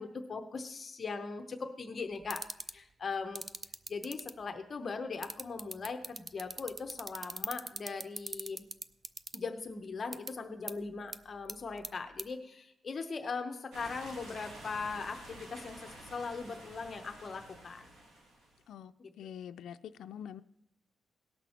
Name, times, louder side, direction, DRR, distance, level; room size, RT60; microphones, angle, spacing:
voice 1, 0.0-2.4 2.7-3.4 3.9-8.6 9.3-17.8 19.0-19.1, left 4 dB, 35° left, 5 dB, 0.8 m, -40 dB
sound 1, 2.2-2.7 3.4-4.3 5.2-9.4 10.1-10.3 10.7-10.8 11.1-11.2 11.5-11.9 12.2-12.3, right 3 dB, 25° right, 0.4 m, -38 dB
sound 2, 13.7-18.6, right 1 dB, 85° right, 2.4 m, -50 dB
voice 2, 18.7-20.4, left 9 dB, 85° left, 9 dB, 0.3 m, -45 dB
18.0 x 6.1 x 4.3 m, 0.80 s
wide cardioid pair, 145°, 0 cm